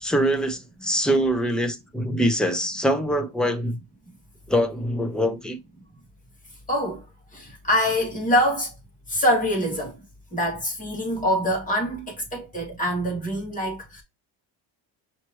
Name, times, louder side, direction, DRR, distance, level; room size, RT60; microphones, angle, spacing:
voice 1, 0.0-3.8 4.5-5.6, equal, ahead, 0.4 m, -24 dB
voice 2, 6.7-7.0 7.3-8.7 9.1-10.0 10.3-14.0, equal, 15° left, 2.3 m, -24 dB
5.6 x 3.1 x 2.9 m
cardioid pair, 160°, 45 cm